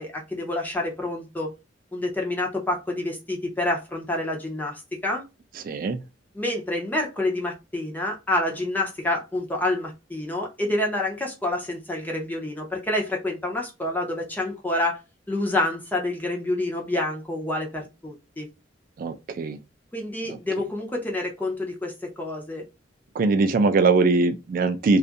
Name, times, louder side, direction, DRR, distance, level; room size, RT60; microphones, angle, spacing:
voice 1, 0.0-1.5 1.9-5.2 6.4-15.0 15.3-18.5 19.9-22.6, left 1 dB, 10° left, 0.6 m, -28 dB
voice 2, 5.6-6.0 19.0-19.6 20.3-20.4 23.1-25.0, right 3 dB, 50° right, 0.3 m, -21 dB
2.5 x 2.3 x 2.5 m
head